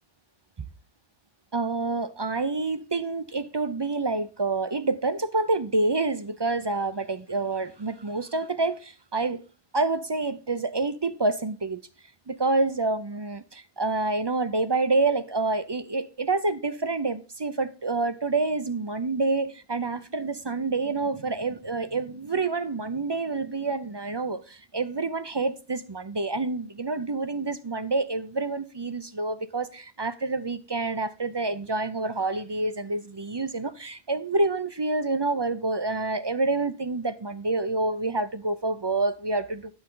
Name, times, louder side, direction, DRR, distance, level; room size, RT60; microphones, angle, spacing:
voice 1, 1.5-9.4 9.7-11.8 12.3-39.7, right 3 dB, 35° right, 0.4 m, -27 dB
11.0 x 7.1 x 3.8 m
omnidirectional pair, 1.1 m